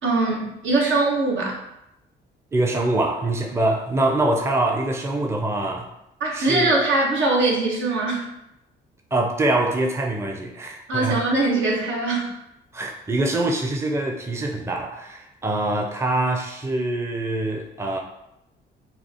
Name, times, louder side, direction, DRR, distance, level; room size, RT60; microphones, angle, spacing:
voice 1, 0.0-1.6 6.2-8.2 10.9-12.3, right 2 dB, 75° right, -2 dB, 1.4 m, -22 dB
voice 2, 2.5-5.9 6.3-6.8 9.1-11.2 12.7-18.0, right 2 dB, 15° right, 1 dB, 0.6 m, -24 dB
5.6 x 2.0 x 4.3 m, 0.84 s
cardioid pair, 90°, 20 cm